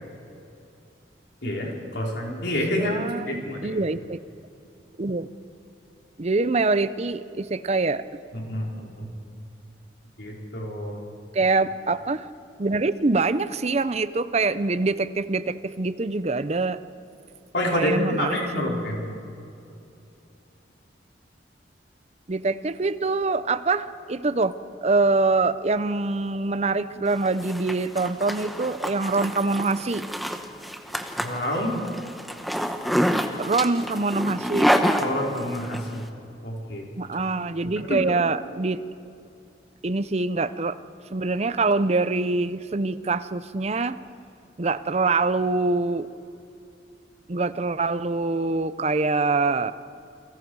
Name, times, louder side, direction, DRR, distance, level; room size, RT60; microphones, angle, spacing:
voice 1, 1.4-3.0 3.3-3.7 8.3-9.1 10.2-11.0 17.5-19.0 31.2-31.7 35.0-36.0 36.4-36.9 37.9-38.0, left 1 dB, 70° left, -2 dB, 4.4 m, -28 dB
voice 2, 2.8-4.2 5.0-5.3 6.2-8.0 11.3-12.3 12.6-16.8 17.6-18.7 22.3-30.1 33.4-34.7 37.0-38.8 39.8-40.8 41.1-44.0 44.6-46.1 47.3-49.7, right 3 dB, 35° right, 14 dB, 0.6 m, -24 dB
Zipper (clothing), 27.1-35.8, equal, ahead, 1.1 m, -27 dB
29.5 x 22.5 x 4.8 m, 2.7 s
head